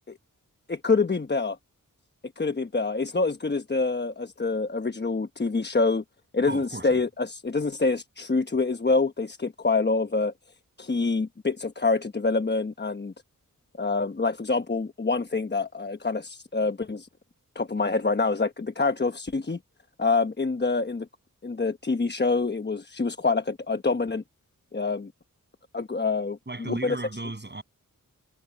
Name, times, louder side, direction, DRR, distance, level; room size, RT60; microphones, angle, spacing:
voice 1, 0.7-1.6 2.4-6.0 6.3-10.3 10.8-13.1 13.8-17.1 17.5-19.6 20.0-21.1 21.4-24.2 24.7-25.1 25.7-27.0, left 3 dB, 30° left, 1.1 m, -26 dB
voice 2, 6.5-7.0 26.5-27.6, right 2 dB, 30° right, 7.6 m, -35 dB
wide cardioid pair, 70°, 33 cm